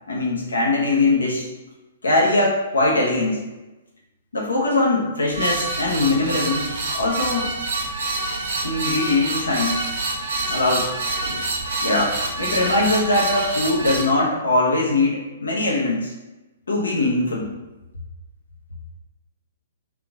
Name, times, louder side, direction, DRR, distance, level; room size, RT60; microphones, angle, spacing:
voice 1, 0.1-1.5 2.0-3.4 4.3-7.5 8.6-9.8 10.5-10.9 11.8-16.1 16.7-17.5, left 2 dB, 75° left, -3 dB, 1.0 m, -21 dB
sound 1, 5.3-14.0, right 2 dB, 65° right, 0.8 m, -27 dB
3.7 x 3.4 x 3.8 m, 1.1 s
figure-of-eight pair, 120°, 0 cm